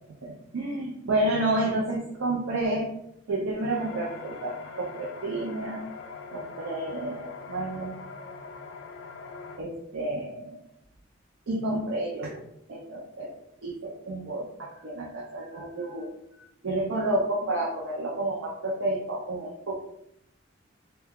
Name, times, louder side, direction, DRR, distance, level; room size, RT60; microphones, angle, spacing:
voice 1, 0.2-2.9 3.3-5.8 6.3-7.9 9.6-10.6 11.5-12.4 12.7-13.3 13.6-16.1 16.6-19.8, right 1 dB, 85° right, -2 dB, 0.5 m, -30 dB
sound 1, 3.7-9.6, left 4 dB, 70° left, 0.4 m, -42 dB
2.7 x 2.2 x 3.5 m, 0.77 s
head